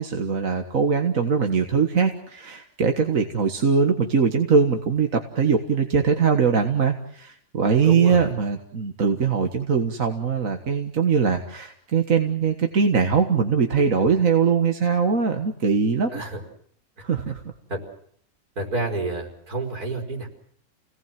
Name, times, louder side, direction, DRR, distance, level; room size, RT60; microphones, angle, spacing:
voice 1, 0.0-16.2 17.0-17.4, right 5 dB, 60° right, 5 dB, 2.0 m, -21 dB
voice 2, 7.8-8.3 16.1-16.4 17.7-17.8 18.6-20.3, right 2 dB, 80° right, 2 dB, 5.3 m, -29 dB
29.0 x 18.5 x 7.6 m, 0.65 s
omnidirectional pair, 1.6 m